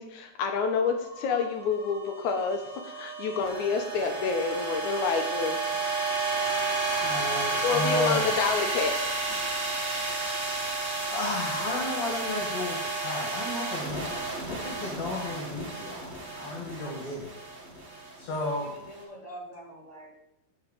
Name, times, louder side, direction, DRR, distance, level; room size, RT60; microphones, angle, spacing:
voice 1, 0.0-5.6 7.6-8.9, left 5 dB, 75° left, 4 dB, 1.8 m, -28 dB
sound 1, 0.6-18.9, right 3 dB, 75° right, 0.6 m, -32 dB
voice 2, 7.0-8.3 9.9-10.8 11.1-17.3 18.2-18.7, left 2 dB, 50° left, -1 dB, 2.7 m, -34 dB
voice 3, 18.6-20.2, right 1 dB, 25° right, -4 dB, 0.8 m, -45 dB
8.3 x 6.5 x 6.5 m, 0.87 s
omnidirectional pair, 4.5 m